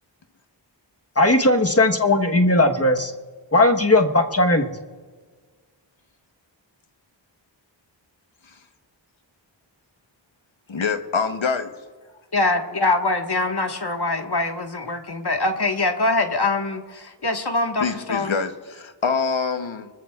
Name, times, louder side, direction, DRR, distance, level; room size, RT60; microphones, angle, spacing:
voice 1, 1.2-3.1 3.5-4.7, left 2 dB, 30° left, 4 dB, 1.2 m, -17 dB
voice 2, 10.7-11.7 17.8-19.9, left 5 dB, 90° left, 8 dB, 1.0 m, -25 dB
voice 3, 12.3-18.4, left 2 dB, 60° left, 4 dB, 1.6 m, -23 dB
24.5 x 14.0 x 2.4 m, 1.5 s
wide cardioid pair, 55°, 45 cm